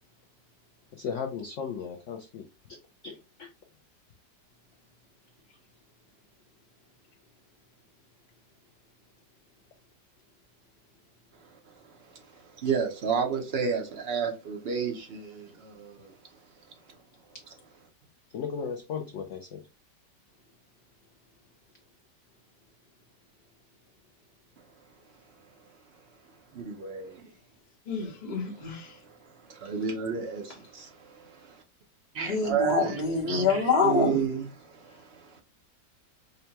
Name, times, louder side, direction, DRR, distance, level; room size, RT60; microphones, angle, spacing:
voice 1, 0.9-2.4 2.7-2.8 3.0-3.5 18.3-19.6, left 6 dB, 80° left, 0.6 m, -36 dB
voice 2, 12.4-16.1 26.5-27.2 28.9-29.0 29.4-31.6 32.1-33.0 33.3-35.4, right 6 dB, 70° right, 0.5 m, -32 dB
voice 3, 27.9-28.9 32.2-34.3, left 4 dB, 30° left, 0.9 m, -26 dB
5.4 x 2.2 x 2.8 m
omnidirectional pair, 1.9 m